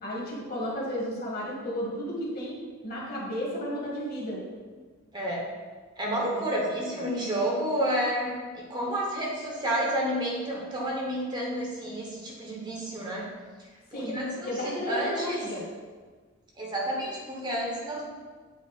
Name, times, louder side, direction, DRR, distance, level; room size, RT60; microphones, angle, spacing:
voice 1, 0.0-4.4 6.3-6.4 7.0-7.2 13.9-14.2 14.4-15.7, equal, 45° left, -4 dB, 1.6 m, -33 dB
voice 2, 6.0-13.3 13.9-15.4 16.6-18.0, right 1 dB, 20° right, -3 dB, 0.9 m, -30 dB
8.1 x 2.8 x 4.7 m, 1.4 s
head